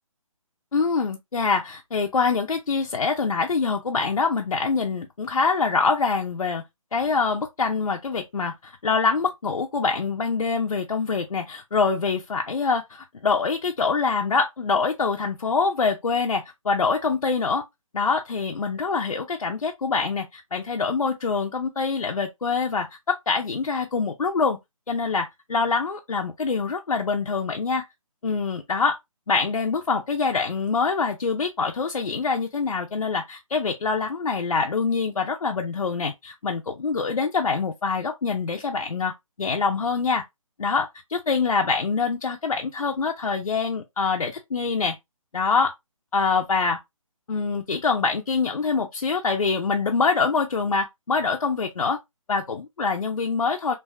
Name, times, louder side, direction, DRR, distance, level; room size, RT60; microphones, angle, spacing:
voice 1, 0.7-6.6 6.9-17.6 17.9-24.6 24.9-27.8 28.2-29.0 29.3-39.1 39.4-40.2 40.6-45.0 45.3-45.7 46.1-46.8 47.3-52.0 52.3-53.7, left 4 dB, 85° left, 0.5 m, -25 dB
2.6 x 2.2 x 2.2 m
figure-of-eight pair, 145°, 18 cm